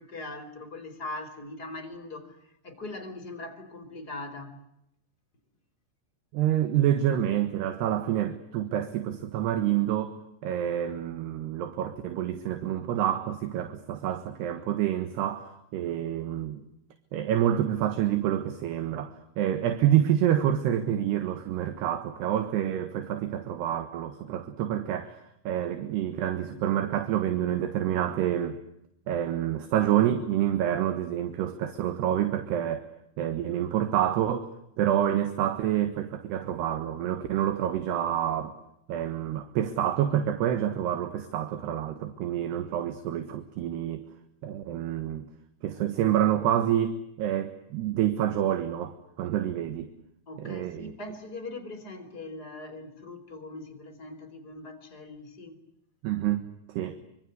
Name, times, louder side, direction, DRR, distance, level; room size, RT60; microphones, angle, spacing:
voice 1, 0.0-2.4 2.6-4.6 50.3-55.6, left 2 dB, 25° left, 3.7 m, -41 dB
voice 2, 6.3-16.6 17.1-28.6 29.1-32.9 33.2-38.6 38.9-44.1 44.4-45.3 45.6-49.9 50.4-50.9 56.0-57.0, right 11 dB, 75° right, 3.5 m, -28 dB
25.5 x 25.0 x 8.1 m
omnidirectional pair, 5.0 m